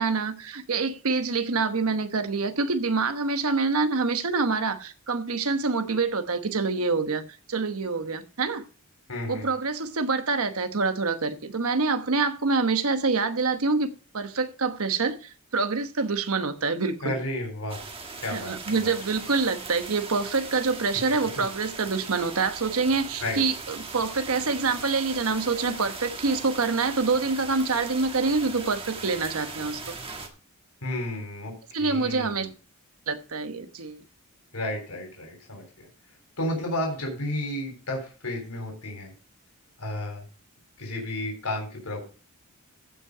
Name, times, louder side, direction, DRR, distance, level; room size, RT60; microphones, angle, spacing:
voice 1, 0.0-7.2 7.5-8.6 9.3-17.1 18.3-29.9 31.7-32.5 33.1-34.0, right 4 dB, 75° right, 1.1 m, -26 dB
voice 2, 9.1-9.5 17.0-17.8 18.2-19.0 23.2-23.4 30.8-31.5 31.8-32.5 34.5-35.9 36.4-39.1 39.8-40.2 40.8-42.0, left 1 dB, 80° left, 3.6 m, -32 dB
sound 1, 17.7-30.3, right 4 dB, 25° right, 1.5 m, -39 dB
15.0 x 5.6 x 4.8 m
head